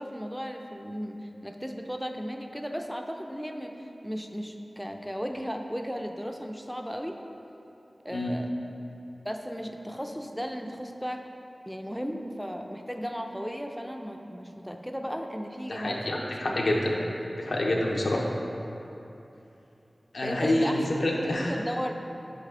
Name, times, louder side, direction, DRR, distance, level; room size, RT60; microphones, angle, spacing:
voice 1, 0.0-7.2 8.0-8.5 9.2-11.3 11.7-16.8 17.1-17.2 17.9-18.2 20.2-20.8 21.2-21.9, equal, ahead, 4 dB, 0.4 m, -36 dB
voice 2, 15.7-17.0 17.4-18.3 20.1-21.5, left 1 dB, 85° left, -2 dB, 0.7 m, -27 dB
6.6 x 4.1 x 3.6 m, 3.0 s
cardioid pair, 40°, 0 cm